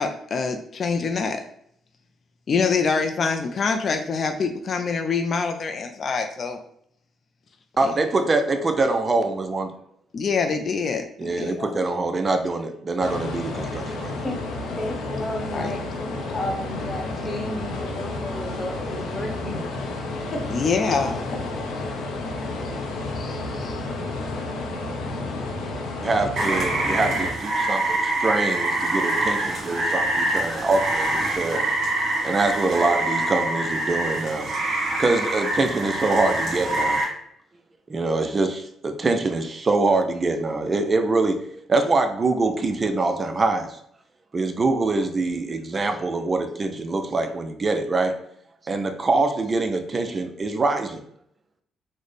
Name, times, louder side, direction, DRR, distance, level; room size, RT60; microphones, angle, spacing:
voice 1, 0.0-1.4 2.5-6.6 7.8-8.0 10.1-11.7 15.5-15.7 20.5-21.2 23.2-23.8, left 5 dB, 50° left, 6 dB, 0.3 m, -25 dB
voice 2, 7.8-9.7 11.2-14.2 26.0-31.6 32.2-34.5 35.0-37.0 37.9-41.4 41.7-43.8 44.3-48.1 48.7-51.0, right 3 dB, 35° right, 6 dB, 0.4 m, -24 dB
sound 1, 13.0-27.3, left 2 dB, 90° left, 0.6 m, -31 dB
voice 3, 14.8-15.8 16.3-19.7 20.3-20.4, left 1 dB, 30° left, 0 dB, 0.9 m, -32 dB
Rain, 26.4-37.0, right 2 dB, 60° right, 1.3 m, -25 dB
4.0 x 2.0 x 3.2 m, 0.69 s
cardioid pair, 90°, 0 cm